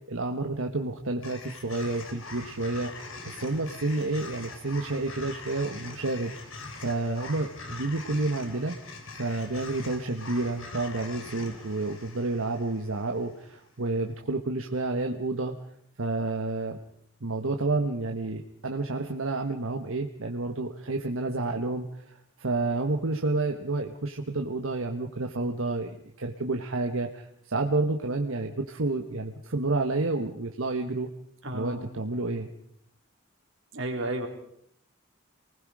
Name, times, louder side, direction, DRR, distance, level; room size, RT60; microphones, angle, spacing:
voice 1, 0.1-6.3 6.8-8.7 9.2-15.5 16.0-16.8 17.2-31.1 31.5-32.5, right 2 dB, 85° right, 3 dB, 1.4 m, -30 dB
sound 1, 1.2-13.5, left 3 dB, 80° left, 3.8 m, -43 dB
voice 2, 31.4-31.9 33.7-34.3, right 1 dB, 70° right, 2 dB, 3.7 m, -32 dB
28.0 x 20.0 x 4.9 m, 0.69 s
head